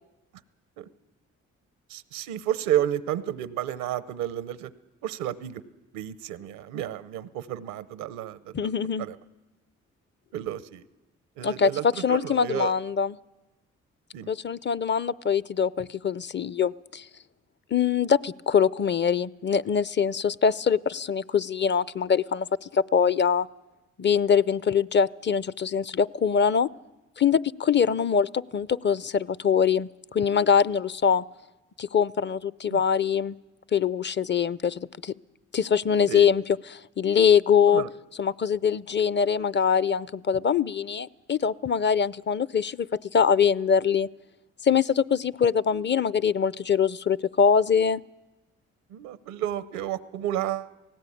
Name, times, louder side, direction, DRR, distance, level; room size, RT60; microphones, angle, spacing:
voice 1, 1.9-4.7 5.0-5.6 5.9-8.7 9.0-9.2 10.3-10.8 11.4-12.7 14.1-14.3 32.7-32.8 36.1-36.3 37.7-37.9 48.9-50.7, right 12 dB, 90° right, 15 dB, 0.8 m, -31 dB
voice 2, 8.5-9.1 11.4-13.1 14.3-17.1 17.7-23.5 24.0-26.7 27.2-31.2 31.8-33.4 33.7-35.1 35.5-36.4 36.7-37.8 38.2-42.9 43.1-44.1 44.6-48.0, left 7 dB, 35° left, 19 dB, 0.6 m, -23 dB
18.0 x 18.0 x 8.6 m, 1.1 s
supercardioid pair, 50°, 32 cm